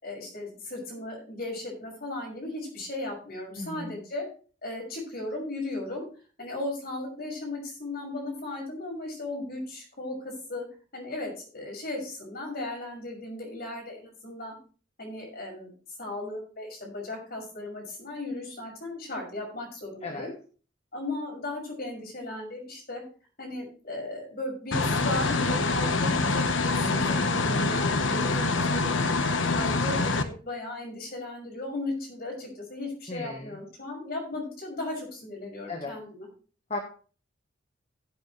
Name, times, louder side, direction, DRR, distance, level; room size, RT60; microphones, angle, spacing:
voice 1, 0.0-4.3 4.6-6.0 6.4-10.6 10.9-14.5 15.0-15.7 16.0-20.3 20.9-23.0 23.4-36.3, left 2 dB, 55° left, 0 dB, 6.2 m, -36 dB
voice 2, 3.6-3.9 20.0-20.3 26.8-27.4 33.1-33.6 35.7-35.9 36.7-36.8, left 2 dB, 35° left, 3 dB, 1.3 m, -36 dB
sound 1, 24.7-30.2, left 3 dB, 90° left, 1.1 m, -25 dB
16.5 x 8.1 x 3.2 m, 0.37 s
head